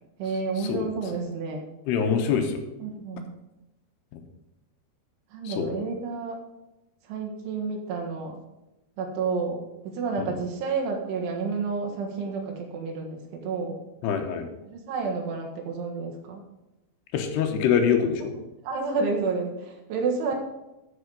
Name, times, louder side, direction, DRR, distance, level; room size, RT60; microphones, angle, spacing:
voice 1, 0.2-1.7 2.8-3.3 5.3-6.4 7.1-8.4 9.0-13.8 14.6-16.4 18.6-20.3, right 4 dB, 80° right, 1 dB, 3.8 m, -30 dB
voice 2, 1.9-2.6 4.1-4.2 5.4-5.7 10.2-10.3 14.0-14.5 17.1-18.3, left 7 dB, 75° left, 5 dB, 2.7 m, -24 dB
12.5 x 5.5 x 5.2 m, 0.95 s
omnidirectional pair, 5.6 m